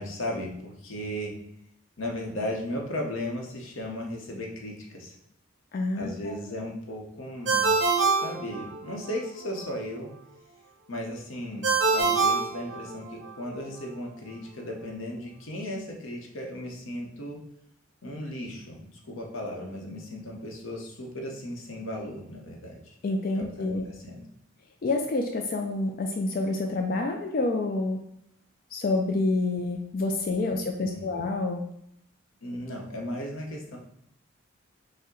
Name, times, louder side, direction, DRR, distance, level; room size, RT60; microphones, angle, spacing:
voice 1, 0.0-1.3 2.0-5.1 5.9-7.7 8.2-10.1 10.9-11.7 11.9-17.4 18.0-22.8 23.3-24.2 30.8-31.2 32.4-33.8, left 1 dB, 90° left, 0 dB, 0.9 m, -36 dB
voice 2, 5.7-6.3 23.0-23.8 24.8-28.0 28.7-31.6, left 2 dB, 45° left, 3 dB, 0.3 m, -28 dB
Ringtone, 7.5-9.1 11.6-13.3, right 4 dB, 60° right, 0.9 m, -25 dB
5.4 x 2.1 x 3.7 m, 0.74 s
head